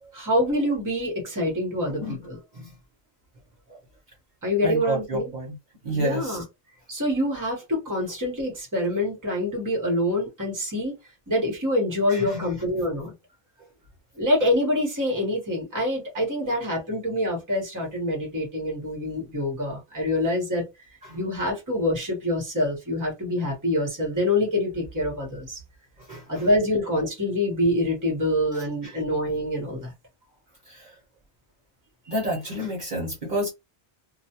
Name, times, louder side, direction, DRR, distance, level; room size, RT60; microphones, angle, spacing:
voice 1, 0.1-2.4 4.4-5.3 5.9-6.4 6.9-10.9 11.3-13.1 14.2-20.7 21.1-25.6 26.3-29.9 32.0-32.2, left 1 dB, 20° right, 0.9 m, -26 dB
voice 2, 1.9-2.2 2.5-2.7 3.7-3.8 4.6-5.6 5.8-6.4 12.1-12.6 21.0-21.2 26.0-26.5 28.5-29.0 30.7-30.9 32.1-33.5, right 1 dB, 50° right, 0.9 m, -31 dB
2.2 x 2.2 x 2.8 m
omnidirectional pair, 1.1 m